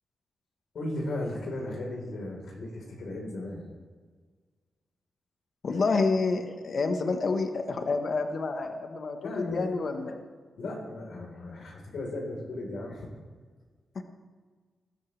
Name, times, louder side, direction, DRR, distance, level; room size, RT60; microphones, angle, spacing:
voice 1, 0.7-3.7 9.2-9.7 10.6-13.1, left 1 dB, 75° left, -1 dB, 4.1 m, -36 dB
voice 2, 5.6-10.2 13.9-14.0, left 4 dB, 55° left, 5 dB, 1.3 m, -28 dB
20.5 x 13.0 x 3.4 m, 1.5 s
wide cardioid pair, 125°, 0 cm